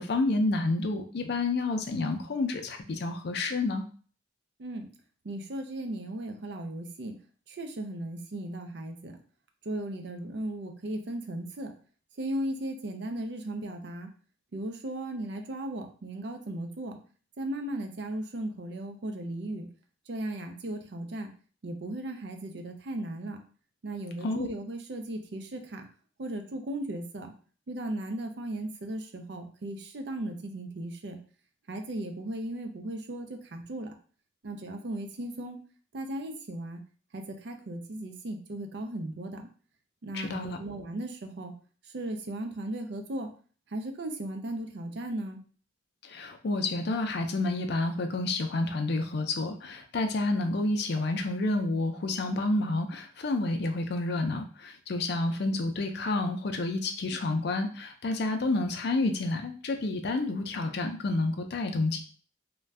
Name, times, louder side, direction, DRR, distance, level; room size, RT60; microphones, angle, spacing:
voice 1, 0.0-3.8 24.2-24.5 40.1-40.6 46.0-62.0, left 2 dB, 60° left, 5 dB, 0.4 m, -29 dB
voice 2, 5.2-7.2 7.5-9.2 9.6-11.7 12.2-14.1 14.5-17.0 17.4-19.7 20.1-21.3 21.6-23.4 23.8-25.9 26.2-27.3 27.7-31.2 31.7-33.9 34.4-35.6 35.9-36.8 37.1-39.5 40.0-41.5 41.8-43.3 43.7-45.4, right 1 dB, 65° right, 4 dB, 0.5 m, -36 dB
2.5 x 2.2 x 3.2 m, 0.41 s
head